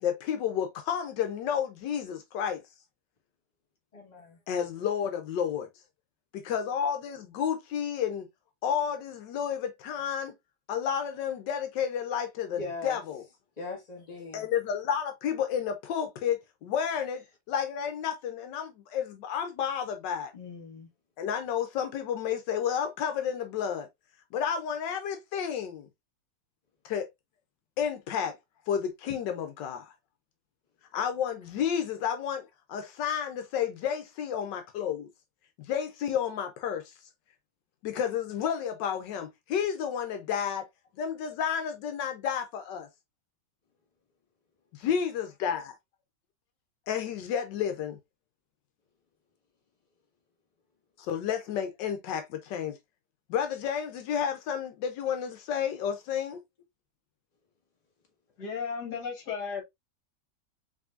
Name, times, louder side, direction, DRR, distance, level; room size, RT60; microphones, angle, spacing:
voice 1, 0.0-2.6 4.5-5.7 6.3-8.3 8.6-10.3 10.7-13.2 14.3-20.3 21.2-23.9 24.3-25.9 26.8-27.1 27.8-28.4 28.7-29.9 30.9-35.1 35.6-37.1 37.8-40.7 41.0-42.9 44.7-45.7 46.9-48.0 51.0-52.8 53.3-56.4, left 8 dB, 85° left, 1.3 m, -31 dB
voice 2, 3.9-4.4 12.5-13.0 13.6-14.5 20.3-20.9, left 3 dB, 25° left, 1.5 m, -40 dB
voice 3, 58.4-59.6, left 6 dB, 65° left, 2.0 m, -34 dB
5.0 x 3.0 x 2.5 m
omnidirectional pair, 1.9 m